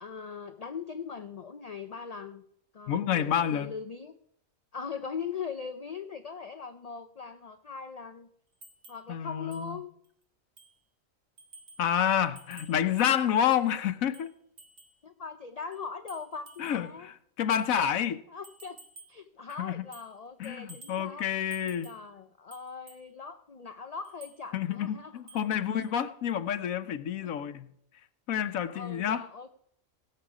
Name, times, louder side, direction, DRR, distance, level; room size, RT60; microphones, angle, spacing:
voice 1, 0.0-2.4 2.7-4.1 4.7-8.3 8.9-9.9 15.0-17.1 18.3-18.8 19.1-25.2 25.6-25.7 27.2-27.3 28.7-29.5, left 5 dB, 50° left, 9 dB, 0.4 m, -40 dB
voice 2, 2.9-3.7 9.1-9.8 11.8-14.3 16.6-18.2 19.6-19.8 20.4-21.9 24.5-27.7 28.3-29.3, left 9 dB, 85° left, 11 dB, 1.2 m, -29 dB
sound 1, 8.6-9.1 9.5-9.7 10.0-10.1 10.6-10.8 11.4-11.9 12.4-13.7 14.1-15.0 15.7-16.9 17.5-17.7 18.4-19.2 19.5-20.2 20.4-21.1 21.5-22.1 22.5-23.1 24.0-24.4 25.3-25.5 25.8-25.9, right 2 dB, 60° right, 1.6 m, -53 dB
18.0 x 6.8 x 4.8 m, 0.70 s
omnidirectional pair, 1.4 m